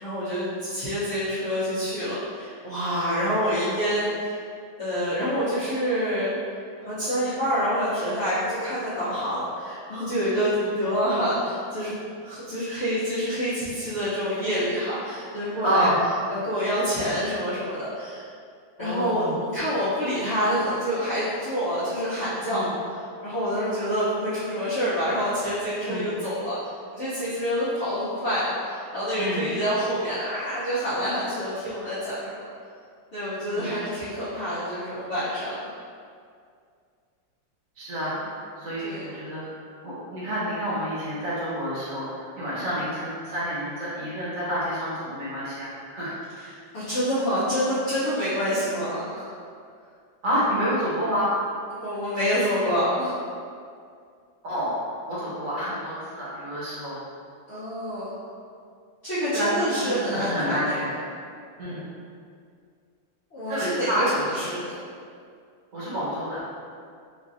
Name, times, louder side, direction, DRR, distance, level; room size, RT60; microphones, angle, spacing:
voice 1, 0.0-4.4 4.8-6.3 6.8-15.9 16.3-18.2 18.8-22.6 23.2-32.5 33.1-35.7 38.8-39.0 46.3-46.5 46.7-49.3 51.7-53.1 57.5-58.1 59.0-60.8 63.3-64.8, equal, 65° left, -14 dB, 0.6 m, -27 dB
voice 2, 15.6-16.0 18.8-19.3 22.5-22.7 25.9-26.1 29.2-29.5 33.5-33.7 37.8-39.4 39.8-46.2 50.2-51.3 54.4-54.7 55.1-57.0 59.3-60.9 61.6-61.9 63.5-64.2 65.7-66.5, equal, 50° right, -9 dB, 1.2 m, -28 dB
3.1 x 2.5 x 2.4 m, 2.2 s
omnidirectional pair, 2.1 m